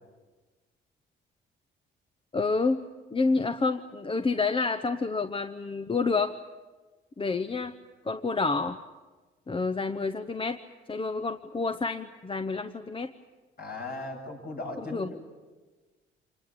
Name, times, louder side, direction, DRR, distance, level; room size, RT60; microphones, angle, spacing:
voice 1, 2.3-2.8 3.1-6.3 7.2-7.7 8.1-8.8 9.5-10.6 10.9-13.1 14.9-15.1, left 4 dB, 25° left, 9 dB, 0.9 m, -28 dB
voice 2, 13.6-15.2, left 2 dB, 50° left, 1 dB, 7.5 m, -38 dB
26.0 x 20.5 x 8.7 m, 1.3 s
cardioid pair, 90°, 20 cm